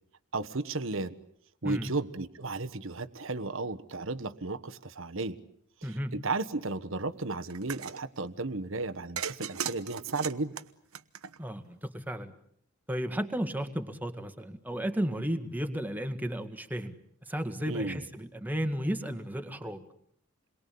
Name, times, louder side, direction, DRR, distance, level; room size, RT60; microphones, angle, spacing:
voice 1, 0.3-1.2 1.6-5.4 5.8-10.5 17.6-18.0, right 3 dB, 60° right, 10 dB, 1.3 m, -34 dB
voice 2, 5.8-6.1 11.4-12.3 12.9-16.9 17.3-19.8, equal, 10° right, 6 dB, 1.9 m, -33 dB
sound 1, 7.5-8.0 9.2-11.7, right 8 dB, 80° right, 1.1 m, -37 dB
29.0 x 22.5 x 8.6 m, 0.69 s
head